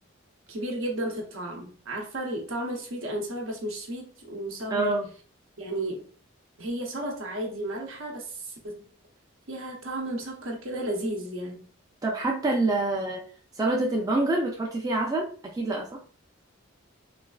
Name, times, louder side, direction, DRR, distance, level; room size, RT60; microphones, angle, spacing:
voice 1, 0.5-4.9 5.6-6.0 6.6-8.8 9.5-11.6, right 1 dB, 75° right, 1 dB, 0.8 m, -33 dB
voice 2, 4.7-5.1 12.0-13.2 13.6-16.0, right 2 dB, 15° right, -1 dB, 0.3 m, -26 dB
3.3 x 2.4 x 2.3 m, 0.42 s
head